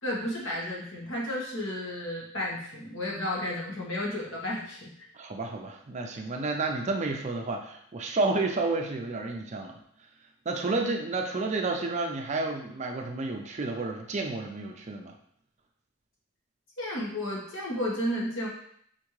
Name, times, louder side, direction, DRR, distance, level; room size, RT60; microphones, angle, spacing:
voice 1, 0.0-4.9 16.8-18.5, left 1 dB, 65° left, -4 dB, 1.4 m, -32 dB
voice 2, 5.1-9.8 10.5-15.1, right 3 dB, 35° right, 3 dB, 0.4 m, -31 dB
4.3 x 3.5 x 3.1 m, 0.66 s
head